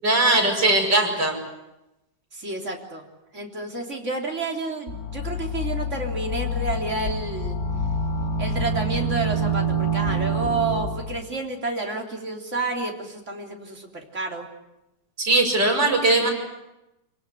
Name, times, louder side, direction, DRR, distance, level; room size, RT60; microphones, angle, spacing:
voice 1, 0.0-1.4 15.2-16.3, right 2 dB, 70° right, 0 dB, 6.4 m, -20 dB
voice 2, 2.3-3.0 3.3-7.6 8.4-14.5 16.0-16.3, right 3 dB, 40° right, 1 dB, 3.8 m, -30 dB
sound 1, 4.9-11.2, right 1 dB, 50° left, 4.5 m, -27 dB
27.0 x 18.0 x 9.7 m, 0.94 s
omnidirectional pair, 2.0 m